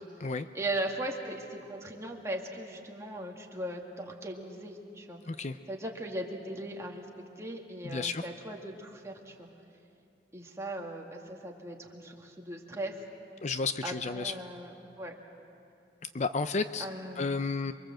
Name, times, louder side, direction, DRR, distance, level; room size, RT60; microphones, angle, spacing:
voice 1, 0.5-5.2 5.7-7.1 7.4-9.5 10.3-13.0 13.8-14.7 15.0-15.1 16.8-17.3, right 1 dB, 15° right, 0 dB, 2.2 m, -38 dB
voice 2, 5.3-5.6 7.8-8.2 13.4-14.3 16.0-16.9 17.2-17.7, left 4 dB, 40° left, 10 dB, 0.6 m, -32 dB
28.5 x 23.5 x 7.7 m, 2.6 s
head